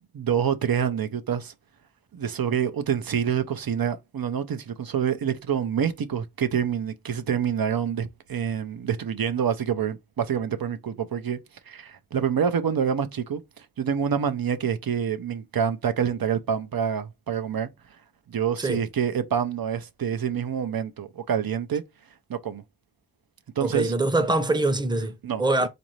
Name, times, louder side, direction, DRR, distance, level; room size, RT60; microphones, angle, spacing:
voice 1, 0.1-1.5 2.1-11.4 11.7-17.7 18.3-21.8 22.3-22.6 23.6-23.9 25.2-25.7, right 8 dB, 90° right, 0.6 m, -27 dB
voice 2, 23.6-25.1 25.4-25.7, right 2 dB, 15° right, 0.6 m, -23 dB
4.0 x 2.5 x 3.0 m
wide cardioid pair, 65°, 34 cm